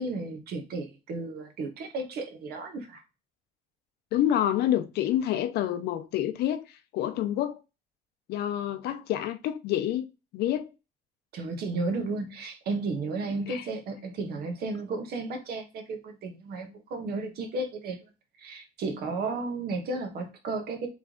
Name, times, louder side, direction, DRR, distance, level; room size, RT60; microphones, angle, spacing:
voice 1, 0.0-3.0 11.3-18.0 18.4-20.9, right 3 dB, 70° right, 1.2 m, -33 dB
voice 2, 4.1-7.6 8.3-10.0 10.3-10.7 13.5-13.6, left 11 dB, 75° left, 0.6 m, -28 dB
3.5 x 3.2 x 3.7 m
cardioid pair, 110°, 17 cm